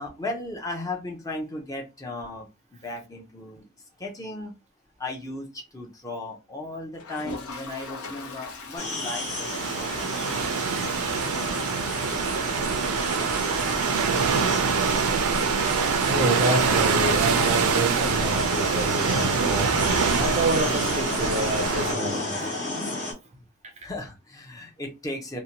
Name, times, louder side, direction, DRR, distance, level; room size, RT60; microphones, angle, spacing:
voice 1, 0.0-2.5 2.7-3.7 4.0-4.5 5.0-10.7 23.8-25.4, left 2 dB, 15° left, 0.5 m, -36 dB
Toilet flush, 6.9-13.7 14.0-14.1 14.3-14.4 14.6-14.7 17.3-17.4 18.7-18.8, left 3 dB, 80° left, 0.7 m, -41 dB
sound 1, 8.8-23.1, left 2 dB, 30° left, 0.9 m, -33 dB
sound 2, 9.1-21.9, right 5 dB, 85° right, 0.5 m, -25 dB
voice 2, 16.1-19.8 20.2-22.5 23.8-23.9, right 2 dB, 30° right, 0.5 m, -28 dB
2.6 x 2.1 x 2.8 m
head